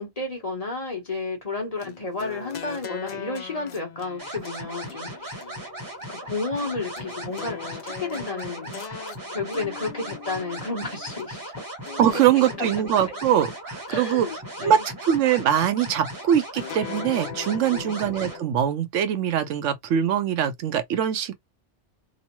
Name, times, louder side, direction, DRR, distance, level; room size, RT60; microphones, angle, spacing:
voice 1, 0.0-5.4 6.1-8.8 9.3-11.4 12.1-12.7 13.9-14.8 17.7-18.0, left 3 dB, 35° left, 1.1 m, -32 dB
sound 1, 1.8-11.3 11.9-13.4 13.9-15.0 16.5-18.5, left 7 dB, 60° left, 0.4 m, -41 dB
sound 2, 4.2-18.4, right 1 dB, 20° right, 0.9 m, -37 dB
voice 2, 12.0-14.3 14.6-21.3, right 9 dB, 85° right, 1.0 m, -22 dB
3.0 x 2.1 x 2.9 m
omnidirectional pair, 1.2 m